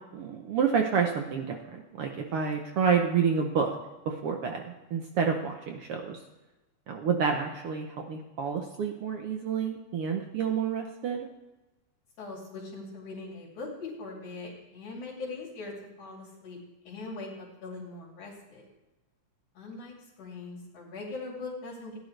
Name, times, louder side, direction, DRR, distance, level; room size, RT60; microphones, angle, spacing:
voice 1, 0.1-3.7 4.0-6.2 6.9-11.3, right 6 dB, 80° right, 3 dB, 1.3 m, -29 dB
voice 2, 12.2-16.6 16.9-18.7 19.5-22.0, left 3 dB, 65° left, -4 dB, 4.0 m, -41 dB
16.0 x 10.5 x 3.3 m, 1.1 s
omnidirectional pair, 3.8 m